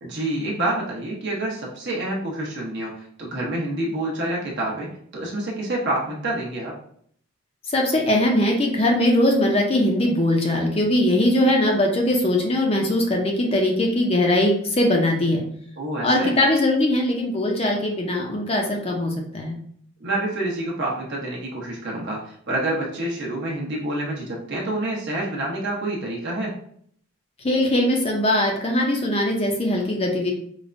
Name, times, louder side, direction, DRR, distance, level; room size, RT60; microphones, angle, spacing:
voice 1, 0.0-6.8 15.8-16.3 20.0-26.5, right 1 dB, 50° right, -3 dB, 0.9 m, -27 dB
voice 2, 7.7-15.4 16.0-19.6 27.4-30.3, left 1 dB, 25° left, 1 dB, 0.5 m, -21 dB
4.9 x 2.2 x 2.5 m, 0.63 s
head